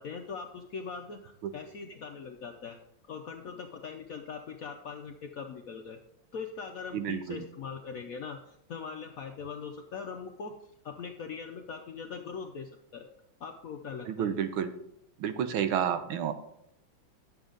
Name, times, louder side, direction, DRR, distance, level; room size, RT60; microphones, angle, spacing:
voice 1, 0.0-2.8 3.0-6.0 6.3-10.5 10.8-13.1 13.4-14.3, left 5 dB, 70° left, 4 dB, 0.8 m, -41 dB
voice 2, 6.9-7.4 14.1-14.7 15.2-16.3, right 9 dB, 90° right, 9 dB, 1.6 m, -30 dB
10.5 x 7.1 x 3.8 m, 0.76 s
omnidirectional pair, 2.2 m